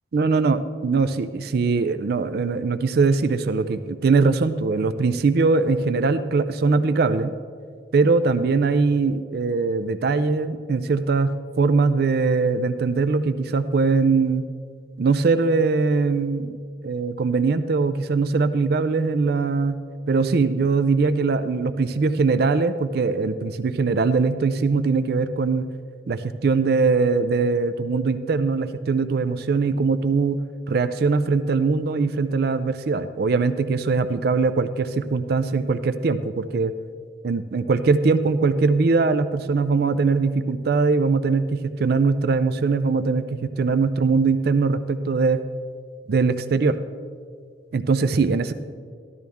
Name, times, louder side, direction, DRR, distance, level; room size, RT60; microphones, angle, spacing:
voice 1, 0.1-7.3 7.9-11.3 11.6-14.4 15.0-16.6 16.8-19.8 20.1-25.7 26.1-36.7 37.2-45.4 46.1-46.8 47.7-48.5, right 4 dB, 55° right, 12 dB, 0.4 m, -21 dB
14.0 x 12.5 x 3.5 m, 2.1 s
head